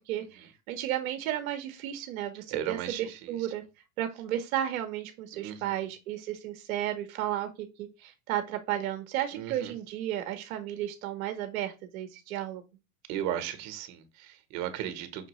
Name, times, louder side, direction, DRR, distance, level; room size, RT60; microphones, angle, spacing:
voice 1, 0.1-3.6 4.0-12.6, right 12 dB, 85° right, 0.9 m, -33 dB
voice 2, 2.5-3.4 5.3-5.8 9.3-9.7 13.1-15.3, right 10 dB, 65° right, 1.1 m, -36 dB
5.8 x 2.7 x 3.0 m
supercardioid pair, 110°, 40 cm